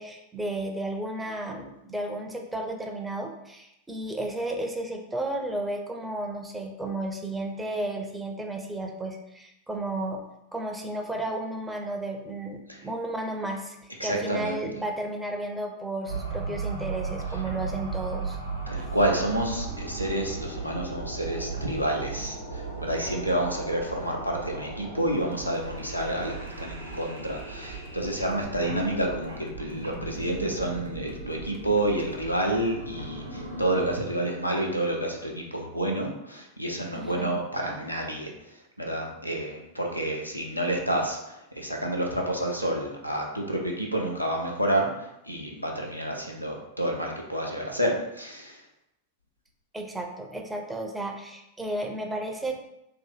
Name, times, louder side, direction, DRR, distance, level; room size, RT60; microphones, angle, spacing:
voice 1, 0.0-10.2 10.5-13.8 14.0-18.4 37.0-37.4 49.7-52.6, right 1 dB, 10° right, 2 dB, 0.5 m, -33 dB
voice 2, 14.0-14.8 17.3-17.4 18.7-48.6, right 1 dB, 90° left, -1 dB, 0.6 m, -29 dB
sound 1, 16.1-34.0, right 3 dB, 85° right, 0.9 m, -36 dB
sound 2, 25.1-32.3, right 9 dB, 55° right, 0.5 m, -46 dB
2.7 x 2.6 x 3.8 m, 0.84 s
figure-of-eight pair, 90°, 0 cm